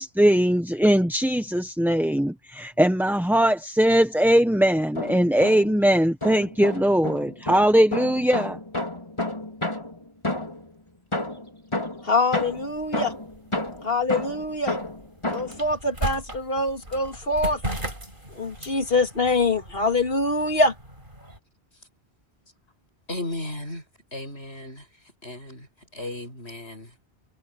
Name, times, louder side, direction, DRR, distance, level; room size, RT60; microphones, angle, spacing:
voice 1, 0.0-8.6, equal, ahead, 0.9 m, -20 dB
sound 1, 4.8-5.8 6.2-10.7 11.1-15.6, left 1 dB, 25° left, 4.4 m, -31 dB
voice 2, 12.0-13.1 13.8-14.8 15.3-17.6 18.4-20.7, left 2 dB, 65° left, 2.6 m, -24 dB
sound 2, 12.3-21.4, right 1 dB, 55° right, 8.1 m, -37 dB
voice 3, 23.1-23.8 24.1-24.8 25.2-25.7 25.9-26.9, left 2 dB, 85° left, 8.1 m, -35 dB
omnidirectional pair, 1.1 m